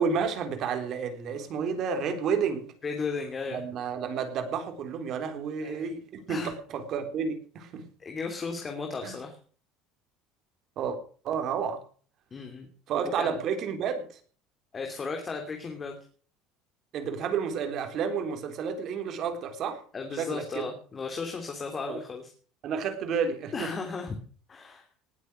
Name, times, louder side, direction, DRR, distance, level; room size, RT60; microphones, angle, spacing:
voice 1, 0.0-2.7 3.5-7.9 9.0-9.2 10.8-11.0 11.2-11.8 12.9-14.2 16.9-19.8 20.1-20.7 21.9-22.0 22.6-23.7, right 6 dB, 50° right, 3.9 m, -31 dB
voice 2, 2.8-3.6 5.6-5.9 6.3-6.5 8.0-9.4 12.3-12.7 13.2-13.3 14.7-16.0 19.9-22.3 23.5-24.1 24.5-24.8, left 4 dB, 25° left, 2.9 m, -35 dB
19.5 x 8.3 x 6.4 m
cardioid pair, 135°, 0 cm